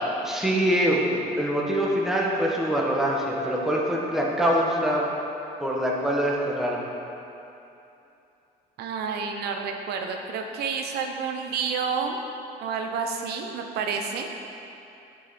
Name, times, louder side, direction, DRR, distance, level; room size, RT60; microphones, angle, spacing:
voice 1, 0.2-5.0 5.6-6.9, equal, ahead, -3 dB, 1.3 m, -24 dB
voice 2, 8.8-12.2 12.6-14.3, right 5 dB, 70° right, 3 dB, 0.7 m, -29 dB
10.0 x 5.6 x 4.2 m, 2.8 s
cardioid pair, 110°, 17 cm